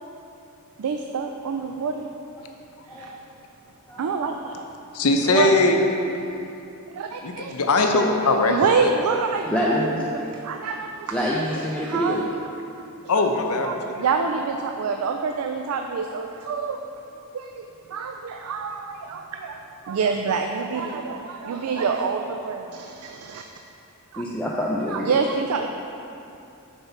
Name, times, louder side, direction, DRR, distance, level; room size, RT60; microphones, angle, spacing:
voice 1, 0.8-2.1 2.9-3.1 4.0-4.5 5.3-5.6 6.9-7.5 8.2-11.2 11.8-12.2 13.1-13.2 13.6-16.8 17.3-19.6 19.8-23.4 24.1-24.2 24.9-25.7, right 5 dB, 90° right, 4 dB, 0.4 m, -27 dB
voice 2, 4.9-5.8 7.2-8.5 8.8-8.9 13.1-13.9, left 3 dB, 85° left, 3 dB, 0.7 m, -20 dB
voice 3, 9.5-10.0 11.1-12.3 24.2-25.2, equal, 5° left, -5 dB, 0.5 m, -26 dB
6.8 x 4.5 x 5.7 m, 2.8 s
head